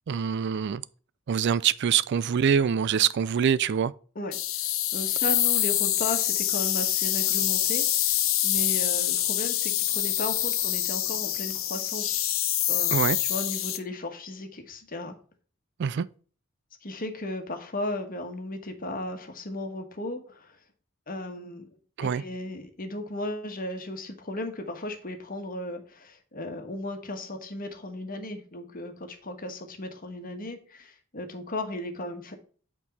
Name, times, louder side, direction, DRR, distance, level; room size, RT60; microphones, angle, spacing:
voice 1, 0.1-0.8 1.3-3.9 12.9-13.2 15.8-16.1 22.0-22.2, right 7 dB, 55° right, 0.4 m, -24 dB
sound 1, 4.3-13.8, left 13 dB, 80° left, 0.8 m, -26 dB
voice 2, 4.9-12.3 12.7-12.9 13.2-15.1 16.8-20.6 21.1-21.7 22.0-32.4, left 1 dB, 45° left, 1.4 m, -35 dB
8.3 x 4.5 x 4.1 m
head